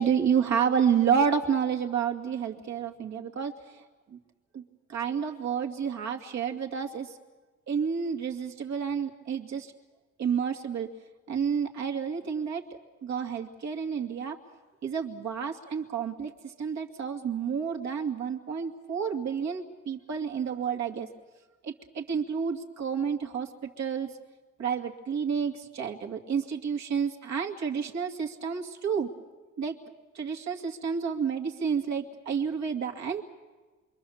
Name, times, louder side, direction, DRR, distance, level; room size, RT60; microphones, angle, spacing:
voice 1, 0.0-3.5 4.1-4.2 4.5-4.6 4.9-7.1 7.7-9.7 10.2-10.9 11.3-12.6 13.0-14.4 14.8-21.1 21.6-23.5 23.8-24.1 24.6-29.1 29.6-29.8 30.1-33.2, right 7 dB, 65° right, 2 dB, 2.4 m, -30 dB
27.5 x 23.5 x 7.2 m, 1.3 s
cardioid pair, 90°, 30 cm